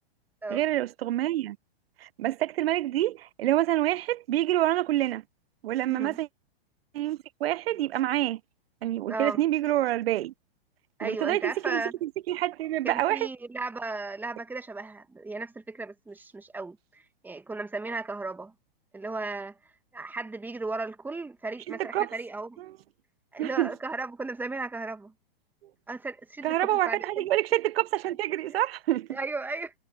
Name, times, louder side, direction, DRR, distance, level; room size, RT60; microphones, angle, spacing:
voice 1, 0.5-1.6 2.0-5.2 5.6-6.3 6.9-8.4 8.8-10.3 11.0-13.3 21.9-22.1 23.4-23.7 26.4-29.2, right 14 dB, 75° right, 0.5 m, -27 dB
voice 2, 9.1-9.4 11.0-11.9 12.8-18.5 18.9-19.6 19.9-22.6 23.3-25.1 25.9-27.3 28.5-28.6 29.1-29.7, right 3 dB, 5° right, 1.2 m, -35 dB
hypercardioid pair, 130°, 30 cm